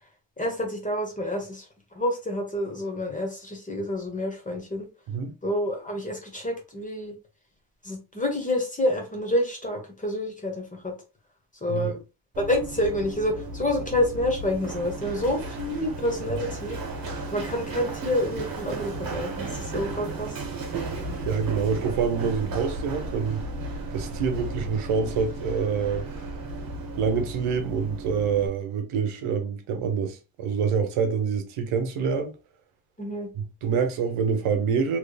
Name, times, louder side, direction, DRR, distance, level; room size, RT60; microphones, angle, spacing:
voice 1, 0.4-1.7 1.9-4.9 5.4-7.1 7.8-10.9 11.6-12.0 12.4-16.8 17.3-20.4 33.0-33.3, left 1 dB, 15° left, 1.0 m, -28 dB
Run, 12.3-28.5, right 2 dB, 45° right, 1.1 m, -34 dB
voice 2, 21.2-23.4 23.9-26.1 27.0-32.3 33.3-35.0, right 6 dB, 80° right, 0.9 m, -26 dB
3.3 x 3.2 x 2.3 m
cardioid pair, 155°, 49 cm